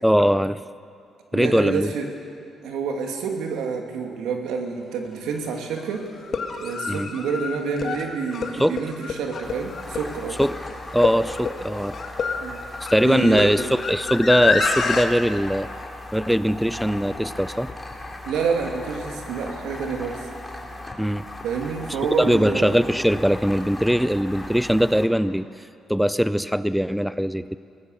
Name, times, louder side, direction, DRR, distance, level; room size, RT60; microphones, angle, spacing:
voice 1, 0.0-0.6 1.3-1.9 6.9-7.1 8.6-8.8 10.4-10.5 10.9-12.0 12.9-15.7 16.1-17.7 21.0-21.2 22.2-27.6, equal, ahead, 15 dB, 0.5 m, -21 dB
voice 2, 1.3-2.1 2.6-6.1 6.6-10.4 12.4-12.6 13.0-13.6 18.2-20.3 21.4-22.7, right 5 dB, 90° right, 2 dB, 2.6 m, -28 dB
sound 1, 5.0-5.1 6.2-15.1, left 5 dB, 55° left, 1.8 m, -28 dB
sound 2, 9.4-25.1, left 2 dB, 15° left, 3.1 m, -38 dB
22.5 x 18.0 x 6.8 m, 2.4 s
cardioid pair, 90°, 0 cm